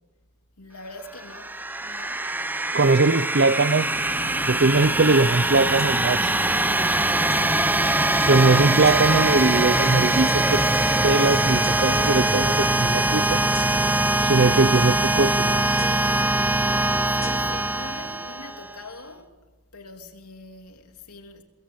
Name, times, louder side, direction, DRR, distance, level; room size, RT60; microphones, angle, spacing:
voice 1, 0.6-1.6 1.8-2.3 2.7-2.9 7.3-7.7 16.8-19.4 19.7-21.4, left 2 dB, 85° left, 3.3 m, -43 dB
sound 1, 1.2-18.8, right 1 dB, 10° right, 0.7 m, -22 dB
voice 2, 2.7-3.9 4.4-6.3 8.3-10.6 11.0-13.4 14.2-15.6, right 3 dB, 50° right, 0.7 m, -21 dB
sound 2, 3.7-15.3, left 2 dB, 60° left, 2.7 m, -37 dB
sound 3, 5.8-5.9 7.3-7.5 8.8-9.0 10.3-10.4 11.6-11.8 13.5-14.0 15.8-16.1 17.2-17.3, left 3 dB, 15° left, 5.8 m, -39 dB
25.0 x 21.5 x 8.8 m
head